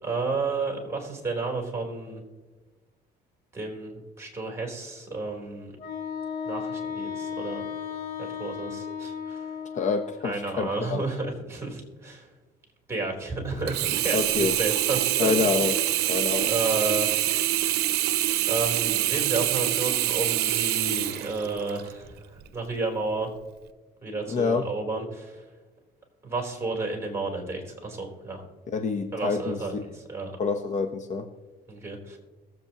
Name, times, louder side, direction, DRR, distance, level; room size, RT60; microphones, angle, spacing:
voice 1, 0.0-2.2 3.5-5.7 6.4-7.7 8.2-9.5 10.2-12.3 12.9-15.3 16.5-17.1 18.5-23.3 24.0-25.4 26.2-28.4 29.1-30.3 31.7-32.2, right 3 dB, 15° right, 0 dB, 3.7 m, -31 dB
Wind instrument woodwind instrument, 5.8-10.4, left 7 dB, 75° left, 2.3 m, -35 dB
voice 2, 9.7-11.0 14.1-14.6 15.2-15.7 16.1-16.5 24.3-24.7 28.7-29.6 30.4-31.3, left 5 dB, 45° left, 7 dB, 1.0 m, -27 dB
Sink (filling or washing), 13.7-21.9 22.5-22.6, right 14 dB, 75° right, 0.6 m, -25 dB
22.0 x 7.8 x 3.0 m, 1.3 s
cardioid pair, 110°, 17 cm